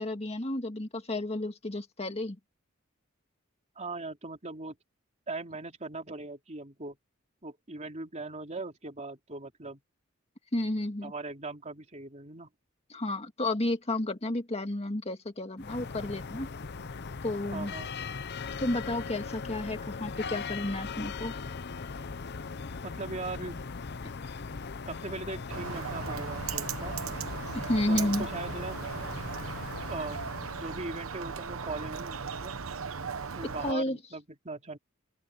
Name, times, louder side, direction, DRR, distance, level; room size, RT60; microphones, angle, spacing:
voice 1, 0.0-2.4 10.5-11.1 12.9-16.5 17.2-17.7 18.6-21.3 27.5-28.3 33.6-34.0, left 1 dB, 30° left, 2.0 m, -31 dB
voice 2, 3.7-4.7 5.3-7.0 7.4-9.8 11.0-12.5 17.5-17.9 22.8-23.6 24.9-26.9 27.9-28.8 29.9-30.2 30.5-32.6 33.4-34.8, right 3 dB, 35° right, 3.3 m, -39 dB
sound 1, 15.6-31.1, left 4 dB, 55° left, 0.7 m, -39 dB
Bird, 25.5-33.7, right 6 dB, 75° right, 1.0 m, -37 dB
open air
head